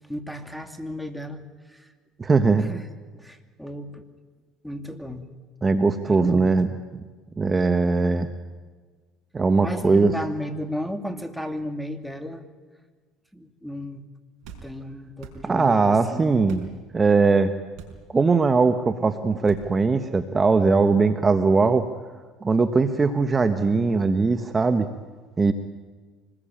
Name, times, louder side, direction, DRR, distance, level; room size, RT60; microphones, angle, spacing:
voice 1, 0.1-1.4 1.7-1.9 2.6-2.8 3.1-4.0 4.6-5.2 6.1-6.5 9.6-12.4 13.3-14.0 14.6-16.4, left 1 dB, ahead, 7 dB, 2.5 m, -34 dB
voice 2, 2.2-2.7 5.6-6.7 7.4-8.3 9.3-10.1 15.4-16.7 16.9-17.5 18.1-21.9 22.4-24.9 25.4-25.5, right 4 dB, 25° right, 9 dB, 1.4 m, -20 dB
sound 1, 14.4-14.7 15.2-15.4 16.5-16.7 17.7-18.0 19.5-19.7, right 7 dB, 65° right, 5.4 m, -42 dB
25.5 x 20.5 x 8.9 m, 1.4 s
supercardioid pair, 85°, 0 cm